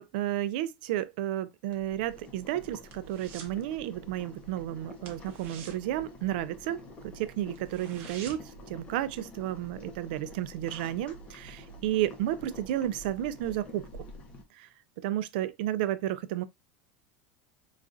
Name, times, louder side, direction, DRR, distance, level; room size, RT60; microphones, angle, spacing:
voice 1, 0.0-14.1 14.5-14.7 15.0-16.4, right 13 dB, 65° right, 0.3 m, -32 dB
Boiling, 1.7-14.4, left 1 dB, 20° left, 0.6 m, -48 dB
sound 1, 2.0-3.6 3.9-4.2 4.5-4.6 5.0-6.8 7.2-7.3 7.5-8.6 9.0-9.1, right 6 dB, 40° right, 0.7 m, -48 dB
4.0 x 2.4 x 2.4 m
supercardioid pair, 175°, 5 cm